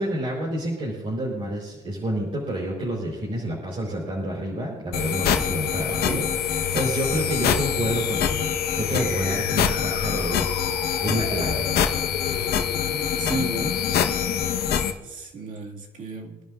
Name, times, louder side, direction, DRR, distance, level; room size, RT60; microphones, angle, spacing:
voice 1, 0.0-10.6 11.0-11.7, right 1 dB, 35° right, -4 dB, 4.6 m, -29 dB
sound 1, 4.9-14.9, left 8 dB, 70° left, 1.3 m, -24 dB
voice 2, 13.2-13.8 15.0-16.5, right 3 dB, 50° right, 0 dB, 2.3 m, -33 dB
25.0 x 11.0 x 2.6 m, 1.2 s
cardioid pair, 110°, 17 cm